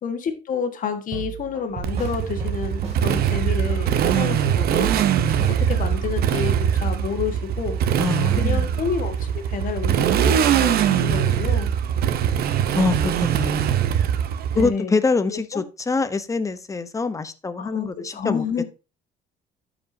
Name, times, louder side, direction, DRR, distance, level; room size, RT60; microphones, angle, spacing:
voice 1, 0.0-4.9 5.6-7.8 8.4-11.7 14.5-15.0 15.3-15.6 17.6-18.6, left 6 dB, 50° left, 1.6 m, -29 dB
sound 1, 1.1-3.0 3.3-6.3, right 6 dB, 40° right, 2.7 m, -34 dB
Motorcycle, 1.8-14.7, right 9 dB, 65° right, 0.8 m, -22 dB
voice 2, 8.0-8.7 12.7-13.9 14.6-18.4, left 4 dB, 20° left, 0.8 m, -25 dB
12.5 x 5.1 x 2.7 m
cardioid pair, 110°, 17 cm